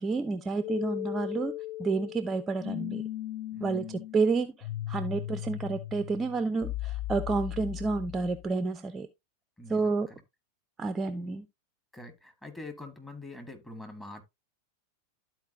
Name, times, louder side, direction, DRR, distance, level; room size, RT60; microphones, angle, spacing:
voice 1, 0.0-3.0 3.6-9.1 9.7-10.1 10.8-11.5, right 4 dB, 20° right, 0.5 m, -30 dB
sound 1, 0.6-8.5, left 15 dB, 40° left, 0.5 m, -37 dB
voice 2, 3.5-4.0 9.6-10.1 11.9-14.2, left 2 dB, 10° left, 1.6 m, -45 dB
12.5 x 4.5 x 2.6 m
figure-of-eight pair, 90°, 0 cm